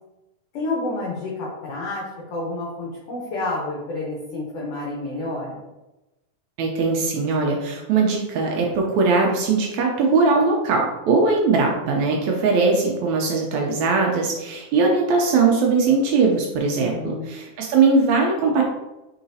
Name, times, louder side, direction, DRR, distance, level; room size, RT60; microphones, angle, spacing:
voice 1, 0.5-2.0 2.3-5.6 16.8-17.3, left 2 dB, 70° left, -4 dB, 1.6 m, -29 dB
voice 2, 6.6-18.6, right 4 dB, 80° right, 0 dB, 1.6 m, -20 dB
4.8 x 3.8 x 2.7 m, 1.0 s
omnidirectional pair, 3.7 m